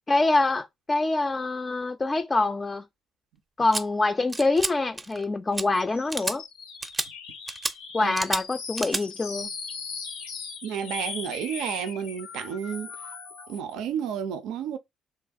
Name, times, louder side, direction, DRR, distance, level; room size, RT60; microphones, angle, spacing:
voice 1, 0.1-2.8 3.6-6.4 7.9-9.5, left 2 dB, 30° left, 0.3 m, -25 dB
sound 1, 3.7-3.8 4.3-4.7 5.0-5.2 5.5-5.6 6.1-6.4 6.8-7.1 7.5-7.7 8.1-8.4 8.8-9.0, right 2 dB, 25° right, 0.5 m, -30 dB
sound 2, 5.7-13.7, left 5 dB, 90° left, 0.5 m, -39 dB
voice 2, 10.6-12.9 13.5-14.8, right 8 dB, 80° right, 0.4 m, -31 dB
3.2 x 2.4 x 2.5 m
hypercardioid pair, 55°, 0 cm